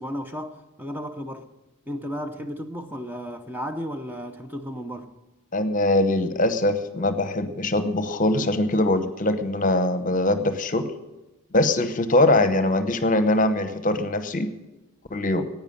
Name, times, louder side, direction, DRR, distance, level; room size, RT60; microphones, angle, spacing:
voice 1, 0.0-1.5 1.9-5.1, equal, 10° right, 0.7 m, -34 dB
voice 2, 5.5-10.9 11.5-14.5 15.1-15.5, left 1 dB, 40° left, 0.9 m, -22 dB
10.5 x 9.2 x 9.6 m
head